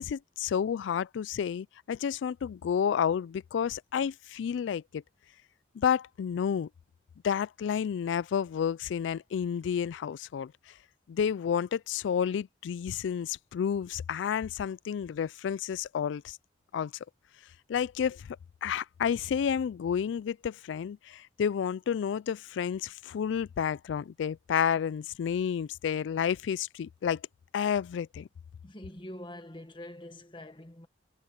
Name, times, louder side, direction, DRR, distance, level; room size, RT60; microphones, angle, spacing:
voice 1, 0.0-5.0 5.8-6.7 7.2-10.5 11.1-16.4 16.7-16.9 17.7-27.2 27.5-28.3, left 8 dB, 75° left, 0.3 m, -30 dB
voice 2, 28.6-30.9, left 1 dB, 25° left, 1.6 m, -45 dB
head